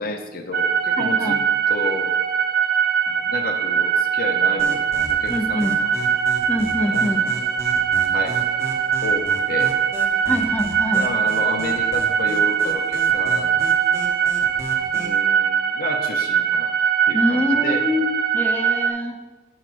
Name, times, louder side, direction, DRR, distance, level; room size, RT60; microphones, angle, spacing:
voice 1, 0.0-1.4 1.7-2.1 3.1-4.8 5.2-5.9 6.8-7.5 8.1-8.4 9.0-9.7 10.9-13.6 14.9-16.7 17.1-17.8, left 3 dB, 55° left, 4 dB, 0.6 m, -31 dB
sound 1, 0.5-18.9, right 8 dB, 55° right, 0.5 m, -21 dB
voice 2, 1.0-1.4 5.3-5.7 6.5-7.3 10.3-11.1 17.1-18.0 18.3-19.2, left 1 dB, 10° left, 3 dB, 0.6 m, -24 dB
sound 2, 4.6-15.2, right 1 dB, 15° right, 0.9 m, -36 dB
5.6 x 4.7 x 6.0 m, 1.2 s
head